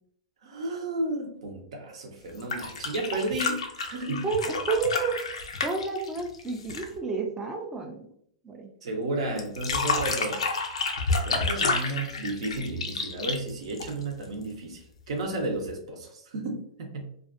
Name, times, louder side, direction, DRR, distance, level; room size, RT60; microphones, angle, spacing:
voice 1, 0.4-4.2 8.8-10.5 11.1-17.1, right 2 dB, 70° right, 3 dB, 0.7 m, -33 dB
sound 1, 2.3-7.0 9.4-14.3 15.7-15.8, left 4 dB, 90° left, 0.5 m, -30 dB
voice 2, 4.2-5.2 5.6-8.1 8.4-8.7, right 4 dB, 15° right, 1 dB, 0.4 m, -30 dB
2.5 x 2.4 x 2.5 m, 0.66 s
hypercardioid pair, 125°, 3 cm